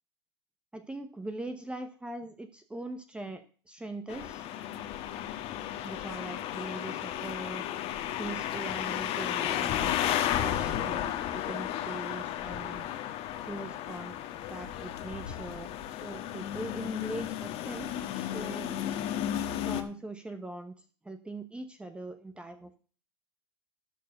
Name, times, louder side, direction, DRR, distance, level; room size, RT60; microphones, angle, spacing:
voice 1, 0.7-4.5 5.8-7.6 8.2-12.9 13.4-14.1 14.5-18.7 19.5-22.8, right 2 dB, 10° right, 8 dB, 0.9 m, -41 dB
sound 1, 4.1-19.8, left 11 dB, 50° left, 1.4 m, -33 dB
12.5 x 4.7 x 6.4 m, 0.40 s
hypercardioid pair, 110°, 13 cm